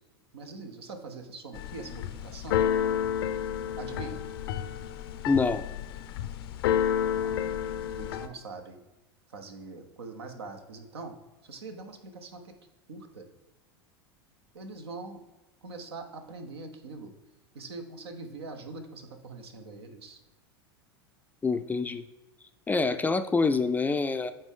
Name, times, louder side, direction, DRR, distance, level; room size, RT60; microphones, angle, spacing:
voice 1, 0.3-2.6 3.8-4.2 7.1-7.3 8.0-8.8 9.3-11.2 11.4-12.5 12.9-13.3 14.5-15.2 15.6-17.1 17.5-20.2, right 3 dB, 80° right, 6 dB, 1.0 m, -43 dB
Keyboard (musical), 1.5-8.3, left 9 dB, 65° left, 0.5 m, -30 dB
voice 2, 5.3-5.6 21.4-22.0 22.7-24.3, left 4 dB, 10° left, 10 dB, 0.4 m, -26 dB
7.8 x 4.5 x 3.8 m, 1.1 s
hypercardioid pair, 90°, 13 cm